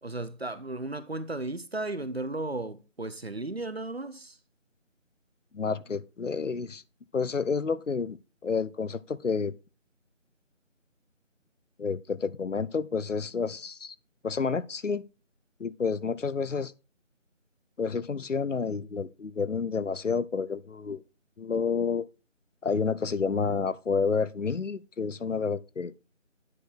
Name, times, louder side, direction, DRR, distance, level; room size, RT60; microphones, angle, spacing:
voice 1, 0.0-4.4, right 2 dB, 50° right, 0.7 m, -35 dB
voice 2, 5.5-6.8 7.1-8.2 8.4-9.5 11.8-14.0 14.2-15.0 15.6-16.7 17.8-21.0 21.4-22.1 22.6-25.9, left 5 dB, 70° left, 0.7 m, -29 dB
9.8 x 4.8 x 4.2 m
figure-of-eight pair, 180°, 39 cm